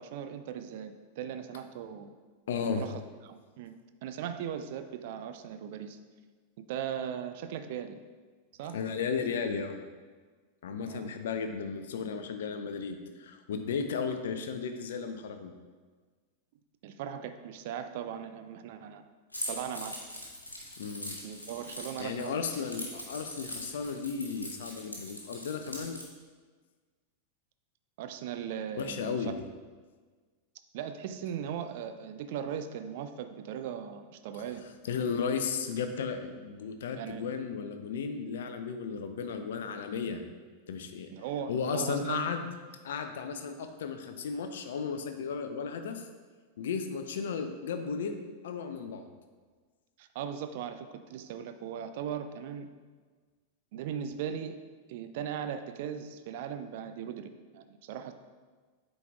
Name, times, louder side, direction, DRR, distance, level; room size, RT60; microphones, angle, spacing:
voice 1, 0.0-2.1 2.7-3.8 4.0-6.0 6.7-8.0 8.6-8.8 10.8-11.1 16.8-19.0 19.5-20.0 21.2-22.4 28.0-29.2 30.7-34.6 37.0-37.2 41.1-42.3 50.0-52.7 53.7-54.6 54.9-58.1, right 8 dB, 50° right, 9 dB, 0.4 m, -38 dB
voice 2, 2.5-2.8 8.7-9.8 10.6-15.5 20.8-21.2 22.0-26.0 28.8-29.3 34.8-40.2 40.7-41.1 41.5-42.5 42.8-46.1 46.6-48.2 48.4-49.1, left 6 dB, 60° left, 7 dB, 0.6 m, -34 dB
Keys jangling, 19.3-26.1, left 1 dB, 85° left, 1.1 m, -41 dB
8.3 x 4.1 x 3.5 m, 1.5 s
figure-of-eight pair, 90°, 0 cm